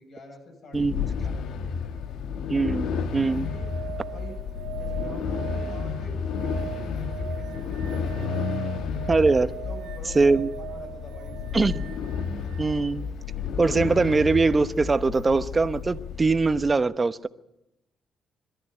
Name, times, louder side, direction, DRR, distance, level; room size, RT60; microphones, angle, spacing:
voice 1, 0.0-1.9 2.8-3.7 4.1-9.2 9.5-11.7, left 1 dB, 60° left, 7.8 m, -46 dB
sound 1, 0.7-16.7, left 6 dB, 80° left, 1.3 m, -32 dB
voice 2, 0.7-1.0 2.5-2.9 3.1-3.5 9.1-9.5 10.2-10.5 11.5-11.9 12.6-13.1 13.6-17.3, right 3 dB, 25° right, 0.9 m, -22 dB
sound 2, 3.0-12.8 15.1-15.2, right 13 dB, 85° right, 1.5 m, -40 dB
23.0 x 13.0 x 9.9 m
cardioid pair, 90°, 0 cm